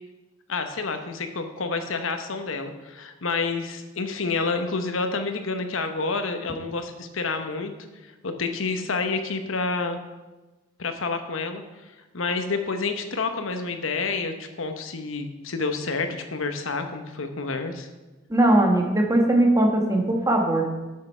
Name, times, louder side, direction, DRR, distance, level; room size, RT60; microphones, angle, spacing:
voice 1, 0.5-7.7 8.2-10.0 10.8-11.6 12.1-17.9, left 4 dB, 75° left, 7 dB, 1.0 m, -29 dB
voice 2, 18.3-20.7, right 1 dB, 15° right, 1 dB, 1.2 m, -20 dB
7.6 x 7.6 x 5.5 m, 1.2 s
head